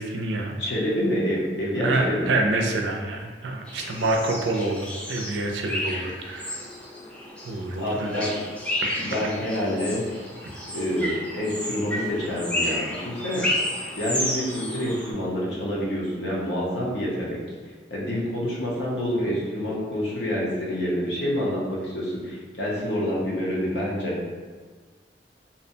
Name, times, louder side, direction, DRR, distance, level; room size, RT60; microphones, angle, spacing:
voice 1, 0.0-0.6 1.8-6.6 7.4-8.2 8.8-8.9, right 2 dB, 85° right, 2 dB, 0.4 m, -27 dB
voice 2, 0.6-2.3 7.8-8.3 9.0-10.0 10.7-13.5 14.0-17.4 17.9-24.1, equal, 75° left, -5 dB, 0.8 m, -27 dB
sound 1, 3.7-15.1, left 1 dB, 5° left, 0.4 m, -32 dB
2.6 x 2.1 x 2.6 m, 1.5 s
head